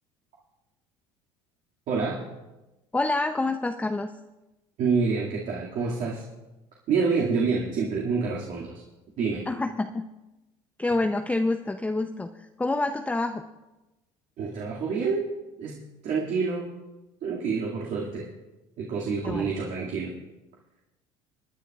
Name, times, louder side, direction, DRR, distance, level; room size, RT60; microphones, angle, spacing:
voice 1, 1.9-2.2 4.8-6.2 6.9-8.8 9.2-9.5 14.4-15.3 15.6-16.7 17.2-18.3 18.8-20.2, right 5 dB, 55° right, -4 dB, 2.3 m, -27 dB
voice 2, 2.9-4.1 9.5-10.1 10.8-13.4 19.2-19.5, left 2 dB, 10° left, 6 dB, 0.6 m, -27 dB
29.0 x 9.9 x 2.4 m, 1.0 s
hypercardioid pair, 70°, 15 cm